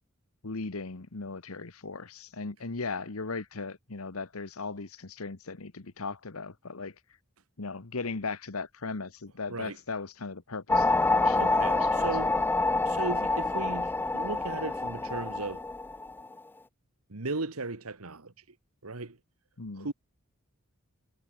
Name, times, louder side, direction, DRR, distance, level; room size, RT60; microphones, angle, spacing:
voice 1, 0.4-6.9 7.6-12.3 19.6-19.9, left 4 dB, 80° left, 1.3 m, -38 dB
sound 1, 10.7-16.4, left 3 dB, 10° left, 0.3 m, -27 dB
voice 2, 11.4-12.4 12.9-15.6 17.1-18.3 18.8-19.2 19.8-19.9, right 3 dB, 85° right, 1.7 m, -36 dB
head